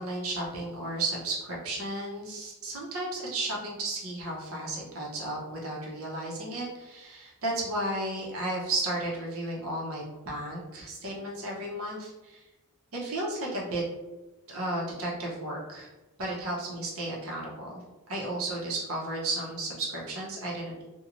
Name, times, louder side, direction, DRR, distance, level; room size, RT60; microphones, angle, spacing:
voice 1, 0.0-12.4 12.9-13.8 14.5-15.9 16.2-17.8 18.1-20.8, right 2 dB, 65° right, -3 dB, 0.8 m, -33 dB
2.9 x 2.3 x 2.5 m, 1.1 s
head